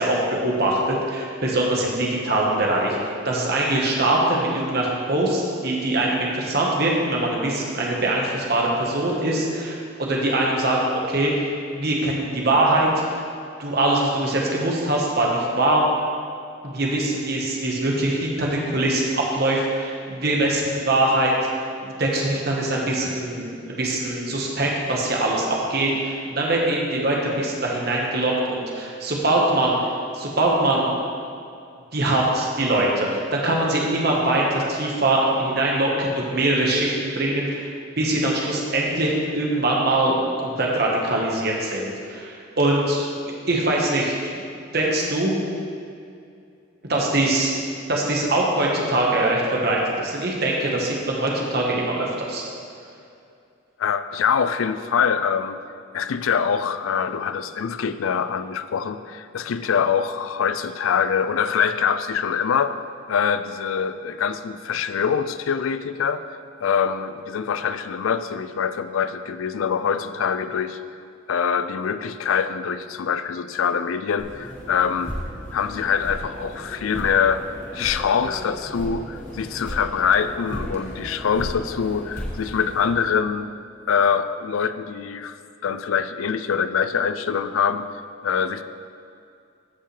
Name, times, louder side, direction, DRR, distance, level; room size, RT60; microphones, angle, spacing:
voice 1, 0.0-12.9 13.6-15.8 16.6-21.3 21.8-29.8 30.1-31.0 31.9-37.7 38.0-43.1 43.5-44.4 44.7-45.3 46.9-47.6 47.9-52.5, right 1 dB, 50° right, -2 dB, 1.4 m, -22 dB
voice 2, 53.8-55.6 55.9-62.8 63.1-66.2 66.6-70.8 71.3-75.2 75.5-77.5 77.7-83.5 83.9-85.4 85.6-87.9 88.2-88.6, left 7 dB, 85° left, 12 dB, 0.4 m, -24 dB
sound 1, 74.2-82.9, equal, 40° left, 1.4 m, -35 dB
14.0 x 5.6 x 3.3 m, 2.4 s
head